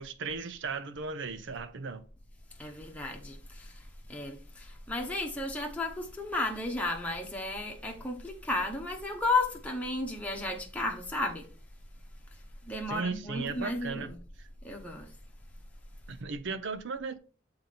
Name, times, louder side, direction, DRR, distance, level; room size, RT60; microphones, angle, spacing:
voice 1, 0.0-2.0 12.9-14.1 16.1-17.2, right 4 dB, 65° right, 0.6 m, -36 dB
voice 2, 2.6-11.5 12.6-14.2 14.6-15.1, left 2 dB, 5° left, 1.0 m, -33 dB
6.9 x 3.9 x 4.2 m
head